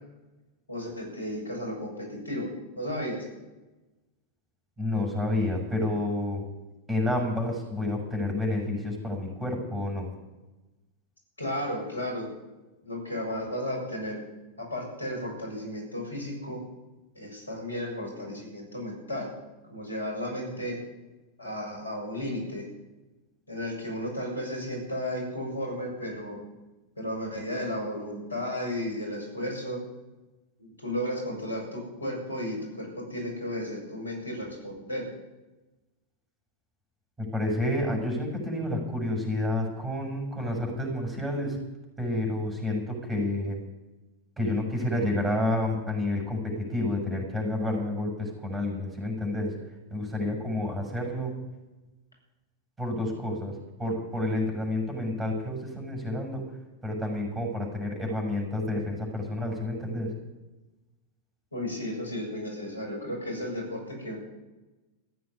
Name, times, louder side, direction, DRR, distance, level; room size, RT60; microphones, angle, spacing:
voice 1, 0.7-2.5 2.8-3.3 11.4-12.3 12.8-14.2 14.6-16.6 17.1-19.3 19.7-20.8 21.4-22.7 23.5-26.4 27.0-29.8 30.6-35.1 61.5-64.2, left 1 dB, 80° left, 1 dB, 7.2 m, -34 dB
voice 2, 4.8-6.4 6.9-10.1 37.2-41.6 42.0-43.6 44.4-49.5 49.9-51.3 52.8-53.5 53.8-56.5 56.8-60.1, left 1 dB, 10° right, 1 dB, 7.4 m, -29 dB
15.0 x 9.5 x 9.9 m, 1.1 s
figure-of-eight pair, 90°, 0 cm